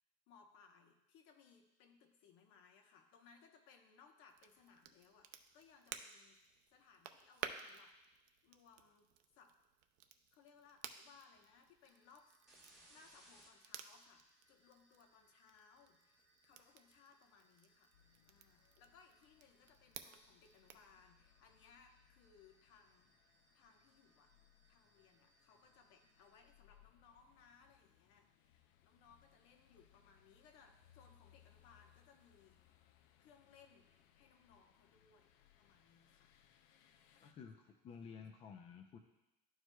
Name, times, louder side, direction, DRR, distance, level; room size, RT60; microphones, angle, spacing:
voice 1, 0.3-6.4 6.7-9.5 10.3-12.4 12.6-17.9 18.3-24.3 24.7-32.7 33.2-33.9 34.1-35.3 35.6-36.3 36.8-37.5 38.0-38.3, left 6 dB, 70° left, 4 dB, 0.9 m, -66 dB
Crackle, 4.3-20.9, right 9 dB, 75° right, 0.5 m, -55 dB
sound 1, 11.8-26.5, right 1 dB, ahead, 1.3 m, -72 dB
sound 2, 17.9-37.3, left 10 dB, 90° left, 0.5 m, -71 dB
voice 2, 37.2-39.0, left 6 dB, 30° left, 4 dB, 0.5 m, -53 dB
12.0 x 4.7 x 2.2 m, 0.93 s
cardioid pair, 170°, 19 cm